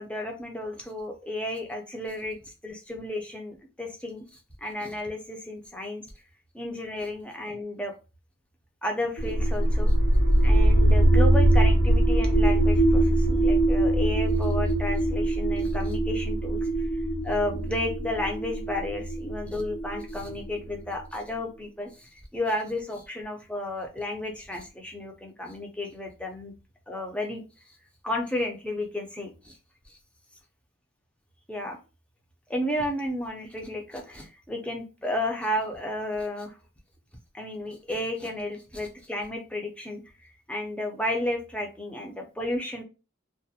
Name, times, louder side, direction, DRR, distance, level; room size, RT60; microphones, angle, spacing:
voice 1, 0.0-6.0 6.5-7.9 8.8-9.9 10.4-16.9 17.2-26.5 26.9-27.4 28.0-29.5 29.9-30.0 31.5-31.8 32.5-36.5 37.3-42.8, left 1 dB, 5° left, 2 dB, 0.4 m, -32 dB
sound 1, 9.2-21.0, right 1 dB, 90° left, 1.0 m, -22 dB
2.3 x 2.0 x 2.7 m, 0.31 s
head